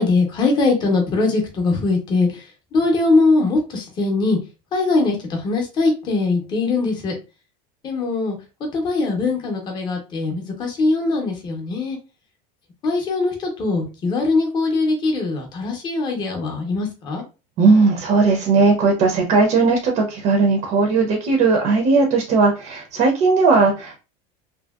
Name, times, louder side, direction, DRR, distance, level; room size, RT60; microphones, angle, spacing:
voice 1, 0.0-2.4 2.7-4.4 4.7-7.1 7.8-8.4 8.7-12.0 12.8-17.2, left 3 dB, 25° left, 2 dB, 0.7 m, -21 dB
voice 2, 17.6-24.0, right 4 dB, 35° right, 1 dB, 0.5 m, -17 dB
2.7 x 2.7 x 2.3 m, 0.31 s
cardioid pair, 170°, 19 cm